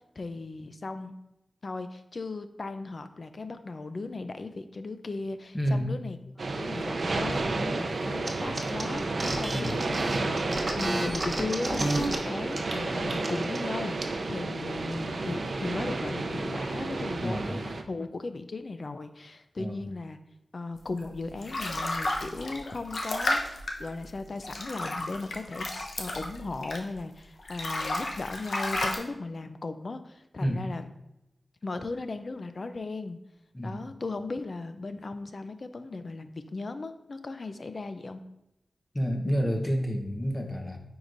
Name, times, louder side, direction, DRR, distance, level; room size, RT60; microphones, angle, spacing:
voice 1, 0.2-1.1 1.6-6.2 6.6-20.2 20.5-30.9 31.6-33.2 33.6-38.2, left 3 dB, 55° left, 10 dB, 0.5 m, -37 dB
voice 2, 5.5-5.9 9.5-9.8 17.2-17.6 19.6-19.8 30.4-30.6 33.5-33.8 38.9-40.8, equal, 20° left, 2 dB, 1.0 m, -29 dB
sound 1, 6.4-17.8, right 3 dB, 65° right, 0.5 m, -32 dB
sound 2, 8.2-8.3 8.6-12.1 12.5-12.8 13.1-13.6, right 2 dB, 45° right, 0.9 m, -31 dB
sound 3, 21.0-27.1 27.4-29.0, left 2 dB, 80° left, 0.9 m, -33 dB
9.4 x 4.7 x 2.6 m, 0.87 s
wide cardioid pair, 85°, 0 cm